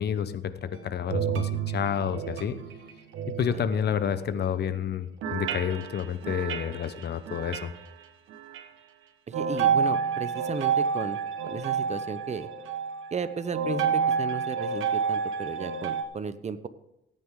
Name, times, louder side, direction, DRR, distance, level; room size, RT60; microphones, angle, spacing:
voice 1, 0.0-2.6 3.3-7.7, left 8 dB, 55° left, 12 dB, 0.9 m, -29 dB
Doppler Bells, 0.7-4.6 5.2-7.8 8.3-8.6 9.3-16.0, right 6 dB, 85° right, 1.3 m, -30 dB
voice 2, 9.3-12.5 13.1-16.7, right 6 dB, 35° right, 13 dB, 0.8 m, -35 dB
16.5 x 9.0 x 3.8 m, 0.88 s
cardioid pair, 90°, 20 cm